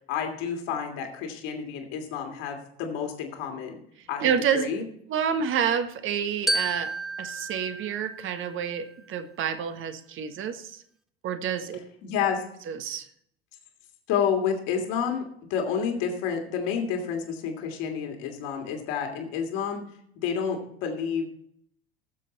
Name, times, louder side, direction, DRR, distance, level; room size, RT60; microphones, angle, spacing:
voice 1, 0.1-3.8 4.1-4.3 4.5-4.8 12.0-12.4 14.1-15.2 15.5-19.8 20.2-21.3, left 7 dB, 60° left, 3 dB, 2.8 m, -29 dB
voice 2, 4.2-4.7 5.1-6.9 7.2-10.8 11.2-11.8 12.7-13.1, right 8 dB, 40° right, 8 dB, 1.6 m, -28 dB
Glockenspiel, 6.5-8.9, right 1 dB, ahead, 0.9 m, -32 dB
18.5 x 7.6 x 4.1 m, 0.68 s
figure-of-eight pair, 65°, 30 cm